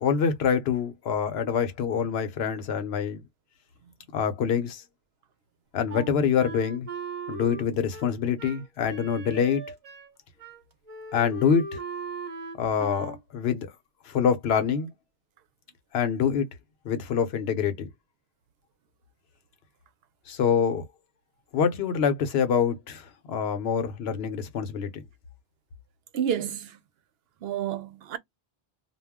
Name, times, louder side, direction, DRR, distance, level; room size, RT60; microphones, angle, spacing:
voice 1, 0.0-3.2 4.1-4.8 5.7-6.9 7.3-9.6 11.1-11.8 12.6-13.7 14.1-14.9 15.9-16.5 16.8-17.9 20.3-20.8 21.5-25.0, left 7 dB, 75° left, 0.9 m, -25 dB
Wind instrument woodwind instrument, 5.9-10.1 10.4-10.6 10.9-13.2, right 4 dB, 40° right, 0.7 m, -38 dB
voice 2, 26.1-26.8 27.4-28.2, right 9 dB, 75° right, 0.8 m, -30 dB
2.3 x 2.1 x 3.4 m
omnidirectional pair, 1.1 m